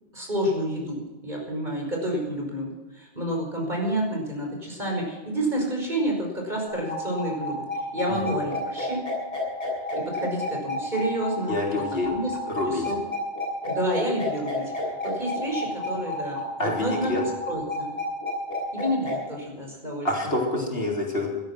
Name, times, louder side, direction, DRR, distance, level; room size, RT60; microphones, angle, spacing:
voice 1, 0.1-9.0 10.0-11.8 12.1-12.4 12.7-13.0 13.7-17.9 18.7-20.4, equal, 45° right, 0 dB, 5.6 m, -29 dB
sound 1, 6.7-19.1, left 2 dB, 35° left, 7.4 m, -31 dB
voice 2, 11.5-12.1 12.5-12.9 16.6-17.2 20.0-21.3, left 2 dB, 65° left, -1 dB, 3.9 m, -26 dB
17.5 x 12.5 x 6.1 m, 1.1 s
omnidirectional pair, 1.1 m